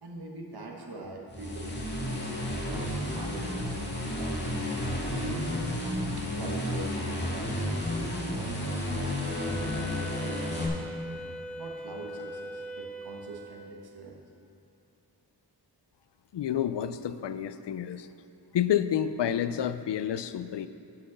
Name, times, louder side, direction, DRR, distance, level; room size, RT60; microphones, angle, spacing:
voice 1, 0.0-2.2 2.7-4.7 5.0-5.8 6.2-7.5 8.0-10.9 11.6-14.2, right 2 dB, 65° right, 0 dB, 1.5 m, -43 dB
sound 1, 1.3-10.7, left 1 dB, 25° left, 1.9 m, -32 dB
Wind instrument woodwind instrument, 9.3-13.9, right 1 dB, ahead, 0.7 m, -41 dB
voice 2, 16.3-18.1 18.5-20.7, left 10 dB, 85° left, 13 dB, 0.5 m, -29 dB
11.0 x 5.7 x 6.4 m, 2.5 s
wide cardioid pair, 65°, 41 cm